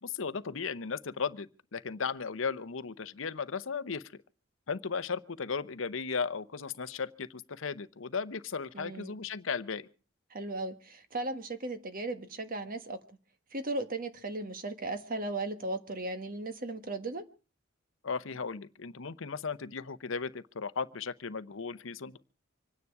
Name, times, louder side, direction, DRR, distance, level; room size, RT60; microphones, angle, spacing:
voice 1, 0.0-4.0 4.7-9.9 18.0-22.2, left 5 dB, 70° left, 0.8 m, -36 dB
voice 2, 8.7-9.1 10.3-13.0 13.5-17.2, right 2 dB, 45° right, 1.5 m, -36 dB
26.0 x 9.7 x 4.7 m
head